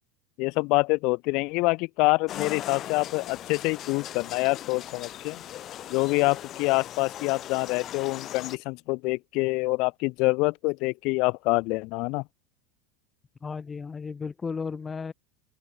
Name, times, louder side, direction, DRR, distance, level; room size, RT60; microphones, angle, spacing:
voice 1, 0.4-5.4 5.9-12.2, left 26 dB, 60° left, 0.7 m, -26 dB
sound 1, 2.3-8.6, left 12 dB, 40° left, 1.0 m, -39 dB
voice 2, 13.4-15.1, left 5 dB, 20° left, 1.8 m, -34 dB
open air
supercardioid pair, 120°, 0 cm